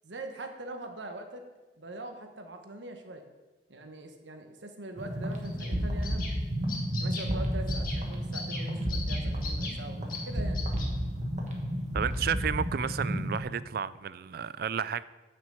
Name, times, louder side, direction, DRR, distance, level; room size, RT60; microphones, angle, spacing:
voice 1, 0.0-1.4 1.8-3.2 3.7-6.2 7.0-10.7, right 2 dB, 90° right, 1.3 m, -42 dB
sound 1, 5.0-13.4, equal, 40° right, 1.6 m, -32 dB
Loxia curvirostra, 5.4-5.7 6.0-6.3 6.7-7.3 7.7-8.0 8.3-8.6 8.9-9.7 10.1-10.2 10.5-10.8, left 5 dB, 50° left, 2.0 m, -38 dB
voice 2, 11.9-15.0, right 7 dB, 55° right, 0.4 m, -32 dB
9.6 x 5.9 x 7.0 m
head